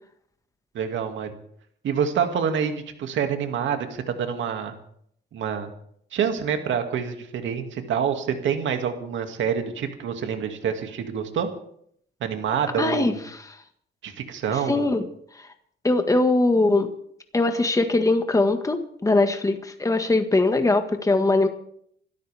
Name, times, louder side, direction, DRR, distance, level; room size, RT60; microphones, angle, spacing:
voice 1, 0.7-1.3 1.8-4.7 5.3-5.7 6.1-11.5 12.2-13.1 14.0-14.9, right 7 dB, 70° right, 6 dB, 2.3 m, -27 dB
voice 2, 12.8-13.4 14.5-15.1 15.4-15.5 15.8-16.9 17.3-21.5, left 2 dB, 15° left, 6 dB, 1.7 m, -21 dB
27.5 x 13.0 x 3.5 m, 0.65 s
cardioid pair, 90°, 20 cm